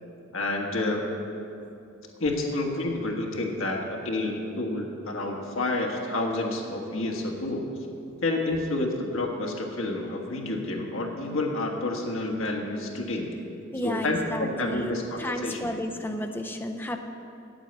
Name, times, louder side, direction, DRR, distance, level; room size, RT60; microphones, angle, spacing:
voice 1, 0.3-1.1 2.2-7.7 8.2-13.4 13.8-15.7, left 2 dB, 75° left, 0 dB, 1.6 m, -29 dB
voice 2, 13.7-17.0, left 1 dB, 10° left, 5 dB, 0.6 m, -32 dB
8.8 x 8.6 x 8.0 m, 2.7 s
head